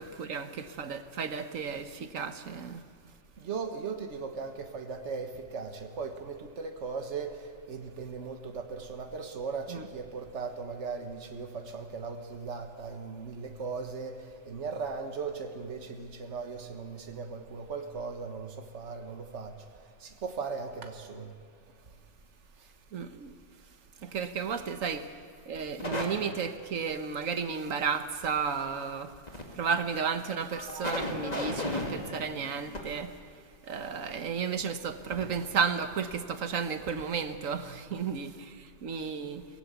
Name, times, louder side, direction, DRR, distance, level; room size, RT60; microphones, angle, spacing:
voice 1, 0.0-2.8 9.7-9.9 22.9-23.3 24.0-25.1 25.5-33.2 33.6-39.5, right 6 dB, 90° right, 1.5 m, -33 dB
voice 2, 3.5-5.3 5.5-5.7 6.0-7.3 7.7-8.6 8.9-9.6 9.9-14.1 14.5-18.5 18.7-19.5 20.2-21.2, right 5 dB, 65° right, 1.7 m, -37 dB
sound 1, 25.8-26.0 29.1-29.4 29.9-30.0 30.5-32.8 34.6-34.7 35.1-35.2 35.6-35.7, left 1 dB, 30° left, 2.5 m, -35 dB
23.0 x 18.0 x 8.1 m
omnidirectional pair, 1.3 m